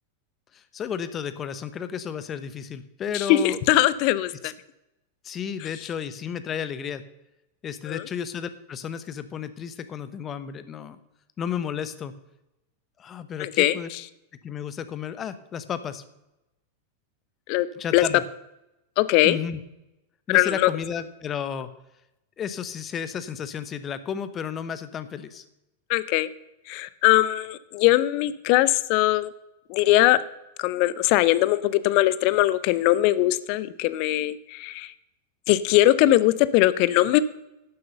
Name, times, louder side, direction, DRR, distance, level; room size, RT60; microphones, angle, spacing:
voice 1, 0.5-3.6 4.4-4.5 5.2-7.0 7.6-11.0 11.4-12.1 13.0-13.9 14.4-16.0 17.8-18.2 19.2-19.6 20.3-21.7 22.4-25.4, left 8 dB, 25° left, 13 dB, 0.9 m, -32 dB
voice 2, 3.1-4.5 7.9-8.0 13.4-13.8 17.5-17.7 17.9-18.0 19.0-19.4 20.3-20.7 25.9-26.3 26.7-29.3 29.7-30.2 30.6-34.9 35.5-37.2, left 15 dB, 45° left, 17 dB, 0.5 m, -21 dB
11.5 x 7.8 x 6.6 m, 0.90 s
figure-of-eight pair, 90°, 0 cm